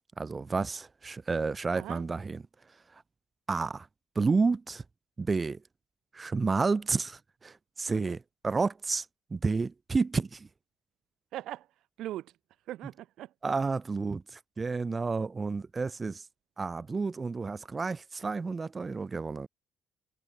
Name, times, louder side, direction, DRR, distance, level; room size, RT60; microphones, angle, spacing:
voice 1, 0.2-2.4 3.5-3.9 4.2-4.8 5.2-5.6 6.1-9.1 9.3-10.5 13.4-16.2 16.6-19.5, right 4 dB, 35° right, 0.3 m, -30 dB
voice 2, 1.7-2.0 7.9-8.2 11.3-11.7 12.0-12.3 12.7-13.3, right 14 dB, 70° right, 1.8 m, -40 dB
hypercardioid pair, 45°, 0 cm